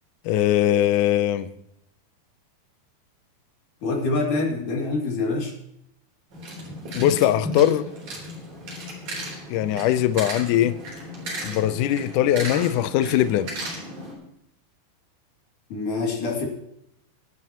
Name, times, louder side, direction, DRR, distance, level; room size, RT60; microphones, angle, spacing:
voice 1, 0.2-1.5 6.9-7.9 9.5-10.8 11.4-13.5, left 12 dB, 85° left, 1.8 m, -21 dB
voice 2, 3.8-5.5 15.7-16.5, left 3 dB, 55° left, 4.0 m, -25 dB
sound 1, 6.3-14.1, equal, 50° right, 4.7 m, -35 dB
23.5 x 9.7 x 3.0 m
omnidirectional pair, 4.4 m